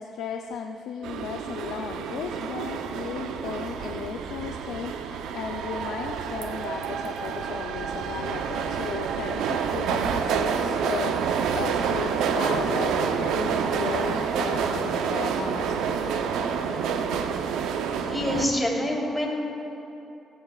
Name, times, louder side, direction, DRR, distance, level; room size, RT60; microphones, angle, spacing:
voice 1, 0.0-15.8, left 7 dB, 85° left, 3 dB, 0.5 m, -35 dB
sound 1, 1.0-18.5, right 6 dB, 90° right, 0.7 m, -28 dB
voice 2, 18.1-19.4, left 1 dB, 15° left, -3 dB, 3.1 m, -26 dB
17.5 x 15.0 x 2.4 m, 2.8 s
cardioid pair, 90°, 0 cm